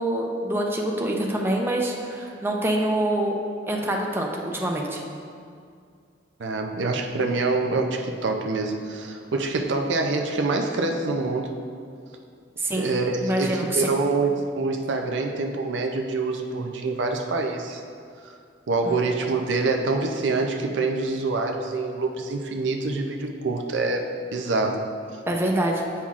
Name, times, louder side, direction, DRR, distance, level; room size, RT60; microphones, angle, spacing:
voice 1, 0.0-3.4 3.7-5.0 12.6-12.9 13.2-13.9 18.9-19.1 25.3-25.9, right 1 dB, 15° right, 0 dB, 0.5 m, -25 dB
voice 2, 6.4-11.5 12.7-17.8 18.2-18.3 18.7-24.8, right 3 dB, 75° right, 3 dB, 0.5 m, -26 dB
8.5 x 5.7 x 2.4 m, 2.2 s
head